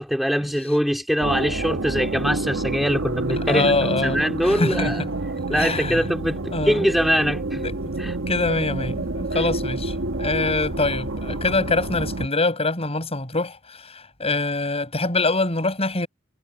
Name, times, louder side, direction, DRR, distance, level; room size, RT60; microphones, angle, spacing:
voice 1, 0.0-3.6 4.0-5.0 5.5-7.6 8.0-8.2, equal, ahead, 2.6 m, -23 dB
sound 1, 1.2-12.3, right 2 dB, 80° right, 1.4 m, -28 dB
voice 2, 3.4-4.2 4.4-5.1 5.5-6.0 6.5-6.9 7.6-7.7 8.3-16.1, left 3 dB, 30° left, 7.2 m, -24 dB
head